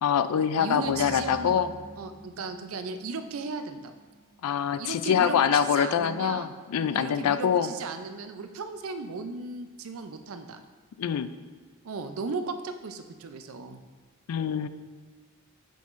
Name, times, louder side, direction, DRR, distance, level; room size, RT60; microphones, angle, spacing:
voice 1, 0.0-1.7 4.4-7.7 11.0-11.3 14.3-14.7, left 8 dB, 85° left, 12 dB, 0.3 m, -25 dB
voice 2, 0.6-1.6 2.0-3.9 4.8-10.6 11.8-13.8, right 4 dB, 65° right, 8 dB, 0.5 m, -36 dB
sound 1, 0.8-5.2, equal, 10° left, 1.3 m, -48 dB
7.4 x 5.4 x 2.5 m, 1.5 s
head